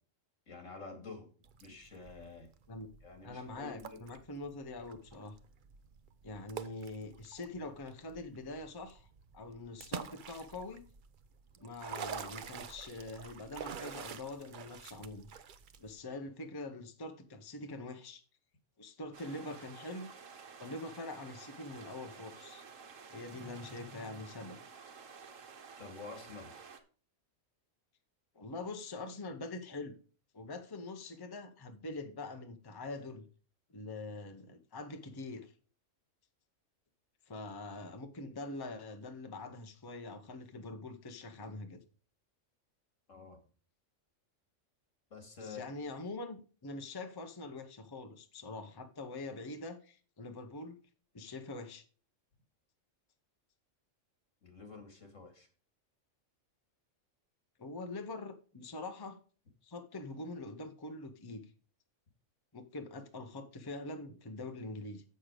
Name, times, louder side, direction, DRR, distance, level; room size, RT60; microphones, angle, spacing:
voice 1, 0.5-1.3 1.6-2.5 3.0-4.0 25.8-26.6 43.1-43.4 45.1-45.9 54.4-55.5, left 4 dB, 75° left, 2.6 m, -49 dB
sound 1, 1.4-16.0, right 7 dB, 50° right, 0.7 m, -48 dB
voice 2, 3.2-5.4 6.2-9.1 9.3-10.8 11.6-15.3 15.8-18.2 18.8-20.1 20.6-22.6 23.1-24.7 28.3-30.0 30.3-33.3 33.7-35.5 37.3-41.8 45.4-50.8 51.1-51.8 57.6-59.2 59.6-61.5 62.5-65.0, left 2 dB, 20° left, 0.7 m, -44 dB
sound 2, 19.1-26.8, right 5 dB, 90° right, 1.4 m, -52 dB
7.6 x 6.6 x 4.9 m
omnidirectional pair, 1.3 m